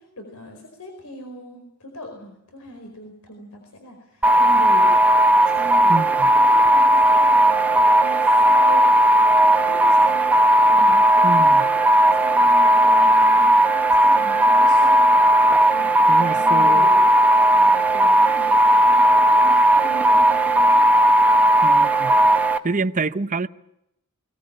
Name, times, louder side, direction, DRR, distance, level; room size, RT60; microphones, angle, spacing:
voice 1, 0.0-4.9 5.4-8.9 9.5-10.3 10.7-15.1 15.7-17.0 17.5-20.9 22.2-22.4, equal, 80° left, 4.7 m, -39 dB
sound 1, 4.2-22.6, right 1 dB, 5° right, 1.2 m, -16 dB
voice 2, 5.9-6.3 11.2-11.7 16.1-16.9 21.6-22.2 22.6-23.5, right 3 dB, 35° right, 0.8 m, -26 dB
21.5 x 19.0 x 8.8 m
head